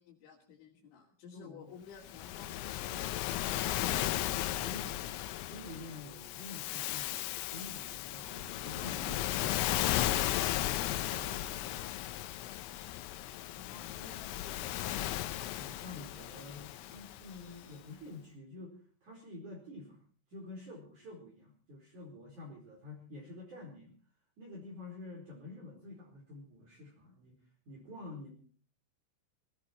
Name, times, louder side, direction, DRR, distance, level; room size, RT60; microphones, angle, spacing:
voice 1, 0.0-3.6 13.5-15.3, left 5 dB, 70° left, -3 dB, 4.9 m, -54 dB
voice 2, 1.3-1.7 3.7-5.2 5.5-7.2 7.5-11.8 15.6-20.0 20.3-24.0 24.4-27.4 27.7-28.3, left 2 dB, 40° right, -2 dB, 5.3 m, -49 dB
Waves surf, 2.0-17.5, left 14 dB, 85° left, 3.5 m, -35 dB
sound 1, 11.5-17.8, left 5 dB, 55° left, 4.0 m, -65 dB
20.5 x 16.5 x 4.4 m, 0.41 s
omnidirectional pair, 5.7 m